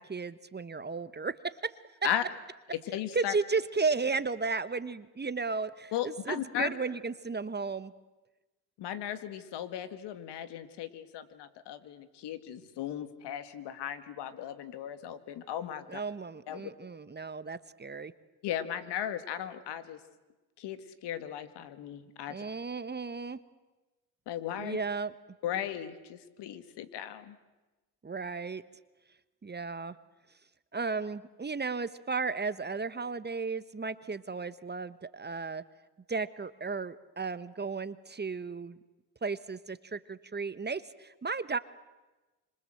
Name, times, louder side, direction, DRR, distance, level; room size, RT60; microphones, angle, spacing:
voice 1, 0.0-1.8 3.1-7.9 15.9-18.1 22.3-23.4 24.6-25.1 28.0-28.6 29.4-30.0 30.7-35.6 36.1-38.8 39.2-41.6, right 4 dB, 25° right, 14 dB, 1.1 m, -34 dB
voice 2, 2.9-3.4 5.9-6.8 8.8-16.0 16.5-16.7 18.4-20.0 20.6-22.4 24.3-24.8 25.4-27.4, left 10 dB, 75° left, 12 dB, 2.0 m, -36 dB
26.5 x 26.0 x 7.8 m, 1.1 s
supercardioid pair, 70°, 41 cm